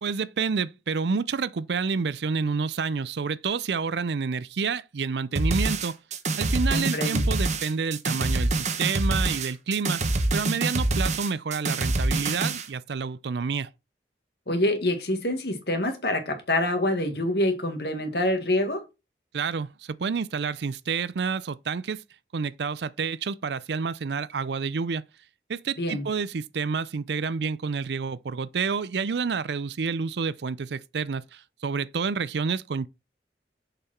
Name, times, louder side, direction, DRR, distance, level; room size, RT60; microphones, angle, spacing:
voice 1, 0.0-6.0 6.4-13.7 19.3-22.0 22.3-25.0 25.5-32.9, right 5 dB, 75° right, 0.5 m, -29 dB
sound 1, 5.4-12.7, right 2 dB, 40° right, 1.0 m, -26 dB
voice 2, 6.7-7.2 14.5-18.8 25.8-26.1, left 1 dB, 65° left, 2.0 m, -26 dB
6.8 x 5.7 x 4.5 m
head